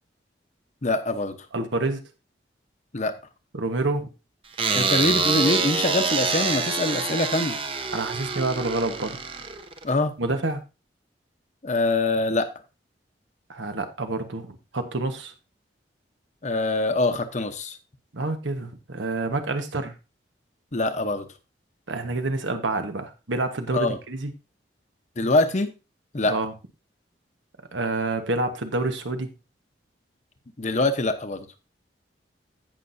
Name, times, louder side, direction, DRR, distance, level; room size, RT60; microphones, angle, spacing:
voice 1, 0.8-1.4 2.9-3.1 4.7-7.6 9.8-10.1 11.6-12.5 16.4-17.8 20.7-21.3 23.7-24.0 25.2-25.7 26.1-26.3 30.6-31.5, left 2 dB, 40° left, 8 dB, 0.9 m, -24 dB
voice 2, 1.5-2.0 3.5-4.1 7.9-9.2 10.2-10.6 13.5-15.3 18.1-19.9 21.9-24.3 26.3-26.5 27.7-29.3, right 2 dB, 90° right, 7 dB, 1.3 m, -28 dB
sound 1, 4.6-9.9, right 4 dB, 30° right, 0.8 m, -26 dB
16.5 x 6.0 x 2.7 m, 0.28 s
head